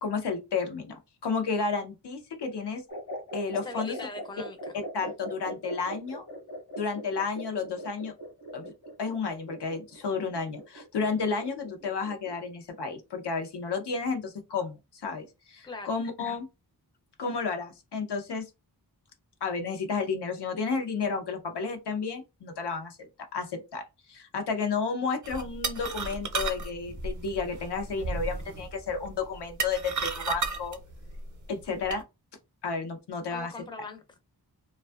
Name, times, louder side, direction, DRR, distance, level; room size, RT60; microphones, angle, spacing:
voice 1, 0.0-0.9 1.2-2.8 3.3-4.0 4.9-6.2 6.8-8.1 8.5-8.7 9.0-16.5 17.2-18.5 19.4-30.8 31.5-32.0 32.6-33.7, left 4 dB, 90° left, 0.7 m, -32 dB
sound 1, 2.9-12.5, equal, 65° left, 1.0 m, -41 dB
voice 2, 3.6-4.6 15.6-15.9 33.3-34.0, left 3 dB, 10° left, 0.4 m, -40 dB
sound 2, 25.2-32.0, right 4 dB, 50° right, 0.6 m, -34 dB
2.5 x 2.3 x 2.3 m
wide cardioid pair, 90°, 39 cm